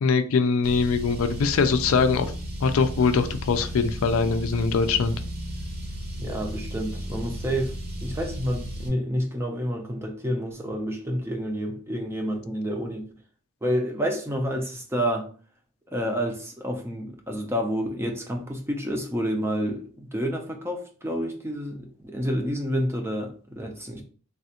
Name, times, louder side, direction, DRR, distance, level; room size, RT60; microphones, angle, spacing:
voice 1, 0.0-2.3 2.6-5.2, left 5 dB, 70° left, 0.4 m, -22 dB
Car, 0.6-8.9, equal, 45° right, 0.8 m, -34 dB
voice 2, 6.2-13.1 13.6-15.3 15.9-24.0, equal, 10° right, 0.4 m, -29 dB
3.3 x 2.4 x 2.8 m
head